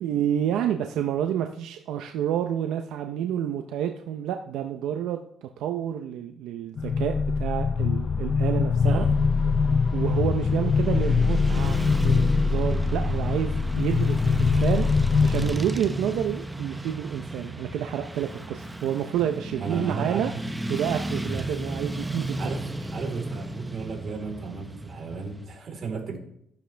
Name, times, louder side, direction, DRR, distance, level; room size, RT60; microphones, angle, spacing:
voice 1, 0.0-9.1 9.9-14.9 15.2-20.3 20.7-22.4, right 10 dB, 90° right, 5 dB, 0.7 m, -29 dB
sound 1, 6.8-15.6, left 5 dB, 50° left, 0.6 m, -23 dB
Motorcycle / Traffic noise roadway noise, 8.8-25.5, right 1 dB, 10° right, 0.8 m, -34 dB
voice 2, 8.8-9.2 19.6-20.4 22.4-26.2, right 5 dB, 55° right, 0 dB, 4.0 m, -34 dB
14.0 x 10.5 x 3.4 m, 0.73 s
cardioid pair, 90°, 0 cm